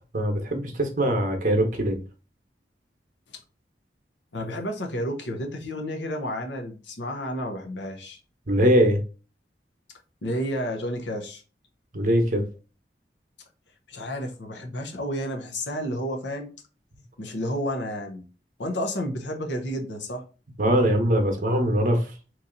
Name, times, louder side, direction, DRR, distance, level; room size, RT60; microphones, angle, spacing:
voice 1, 0.1-2.0 8.5-9.0 11.9-12.4 20.6-22.0, equal, 50° right, 0.9 m, -22 dB
voice 2, 4.3-8.2 10.2-11.4 13.9-16.5 17.2-18.2 18.6-20.2, equal, 90° left, 0.8 m, -31 dB
3.1 x 2.7 x 3.8 m
head